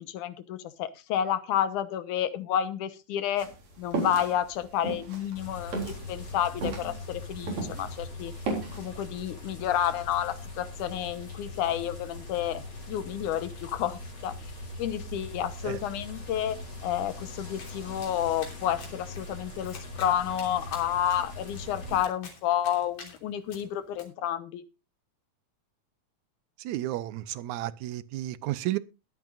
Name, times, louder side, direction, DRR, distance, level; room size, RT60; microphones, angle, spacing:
voice 1, 0.0-3.5 3.8-8.3 8.7-14.3 14.8-16.6 16.8-24.6, left 10 dB, 80° left, 2.5 m, -30 dB
sound 1, 3.4-8.0 8.3-8.9, right 3 dB, 60° right, 5.1 m, -34 dB
sound 2, 5.4-22.0, left 2 dB, 35° left, 4.0 m, -41 dB
Domestic sounds home sounds, 17.6-24.0, left 4 dB, 60° left, 4.4 m, -50 dB
voice 2, 26.6-28.8, right 15 dB, 75° right, 2.0 m, -32 dB
21.0 x 9.0 x 2.5 m
omnidirectional pair, 3.5 m